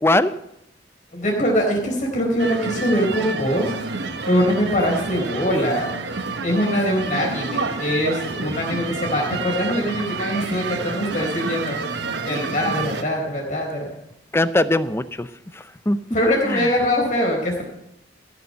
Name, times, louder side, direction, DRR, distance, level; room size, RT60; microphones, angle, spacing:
voice 1, 0.0-0.3 14.3-15.3 15.5-16.0 16.5-16.7, left 1 dB, 15° left, 14 dB, 0.5 m, -20 dB
voice 2, 1.1-3.7 4.2-5.9 6.4-11.8 12.3-13.9 16.1-17.6, equal, 45° left, -1 dB, 4.2 m, -22 dB
sound 1, 2.4-13.0, right 3 dB, 65° right, 1.2 m, -29 dB
15.0 x 6.9 x 7.7 m, 0.82 s
head